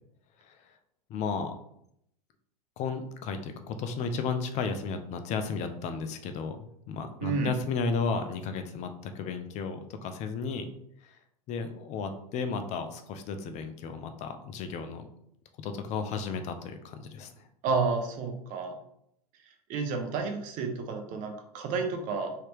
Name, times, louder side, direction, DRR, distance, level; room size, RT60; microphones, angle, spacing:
voice 1, 1.1-1.5 2.8-6.6 6.9-10.7 11.5-15.1 15.6-17.3, left 5 dB, 35° left, 7 dB, 0.5 m, -33 dB
voice 2, 7.2-7.5 17.6-18.8 19.7-22.4, right 4 dB, 40° right, 5 dB, 0.7 m, -30 dB
3.2 x 2.8 x 3.1 m, 0.74 s
hypercardioid pair, 105°, 20 cm